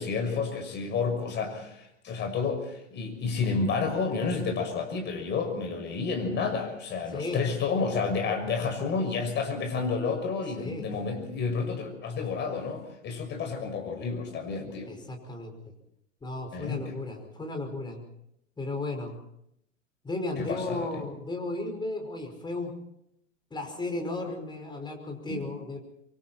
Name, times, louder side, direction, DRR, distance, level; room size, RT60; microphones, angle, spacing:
voice 1, 0.0-14.9 16.5-16.9 20.4-21.0 25.3-25.4, left 4 dB, 25° left, 5 dB, 6.3 m, -30 dB
voice 2, 10.6-10.9 14.9-15.5 16.2-18.0 18.6-19.2 20.0-22.7 23.5-25.8, left 2 dB, 10° left, 3 dB, 5.4 m, -34 dB
26.5 x 24.0 x 4.4 m, 0.75 s
figure-of-eight pair, 105°, 39 cm